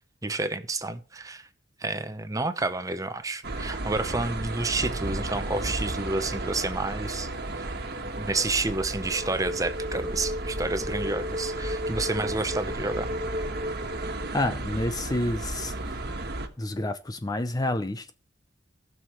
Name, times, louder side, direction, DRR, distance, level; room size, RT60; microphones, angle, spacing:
voice 1, 0.2-1.5 1.8-7.3 7.6-7.7 8.2-13.1, right 3 dB, 20° right, 0.8 m, -30 dB
sound 1, 3.4-16.5, right 2 dB, 55° right, 1.5 m, -34 dB
sound 2, 6.2-14.5, left 1 dB, 35° right, 1.3 m, -37 dB
voice 2, 14.3-15.7 16.6-18.1, left 1 dB, 20° left, 0.5 m, -28 dB
18.5 x 6.4 x 3.1 m
head